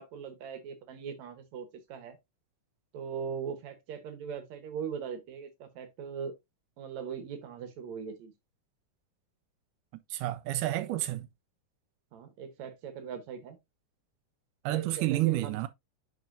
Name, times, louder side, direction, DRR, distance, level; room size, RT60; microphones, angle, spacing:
voice 1, 0.0-2.2 2.9-6.3 6.8-8.3 11.1-11.2 12.1-13.6 14.7-15.5, right 7 dB, 65° right, 2.3 m, -40 dB
voice 2, 10.1-11.3 14.7-15.7, right 16 dB, 80° right, 2.0 m, -29 dB
9.9 x 4.2 x 2.6 m
omnidirectional pair, 3.7 m